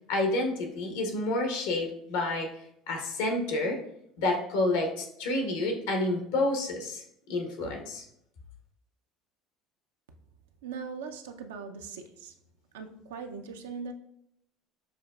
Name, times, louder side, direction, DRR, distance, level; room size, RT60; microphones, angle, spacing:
voice 1, 0.1-2.5 2.9-3.8 4.2-8.0, left 2 dB, 85° left, 3 dB, 0.9 m, -29 dB
voice 2, 10.6-12.3 12.7-13.9, right 5 dB, 90° right, 6 dB, 0.4 m, -40 dB
6.5 x 2.3 x 2.3 m, 0.74 s
supercardioid pair, 85°, 0 cm